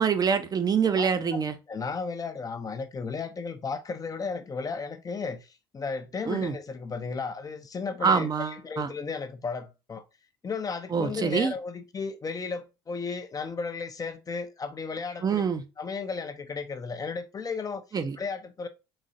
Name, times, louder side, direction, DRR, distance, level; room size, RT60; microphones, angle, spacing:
voice 1, 0.0-1.6 6.2-6.5 8.0-8.9 10.9-11.5 15.2-15.6 17.9-18.2, right 6 dB, 30° right, 0.5 m, -25 dB
voice 2, 1.7-5.5 5.7-10.0 10.4-15.4 15.8-18.7, left 4 dB, 30° left, 0.5 m, -34 dB
3.9 x 3.0 x 2.6 m
hypercardioid pair, 70°, 13 cm